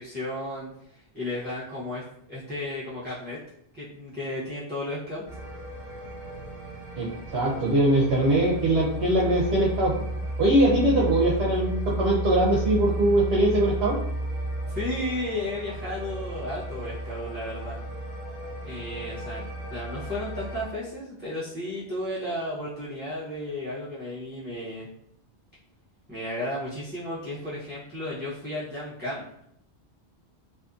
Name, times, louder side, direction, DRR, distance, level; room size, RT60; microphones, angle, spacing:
voice 1, 0.0-2.0 2.3-3.4 3.7-5.2 14.7-17.8 18.6-24.9 26.1-29.4, left 1 dB, 15° right, -11 dB, 0.5 m, -34 dB
sound 1, 5.3-20.7, right 1 dB, 30° left, 1.1 m, -33 dB
voice 2, 7.0-9.9 10.4-14.0, right 1 dB, 70° right, -4 dB, 0.8 m, -22 dB
2.5 x 2.5 x 2.3 m, 0.73 s
omnidirectional pair, 1.1 m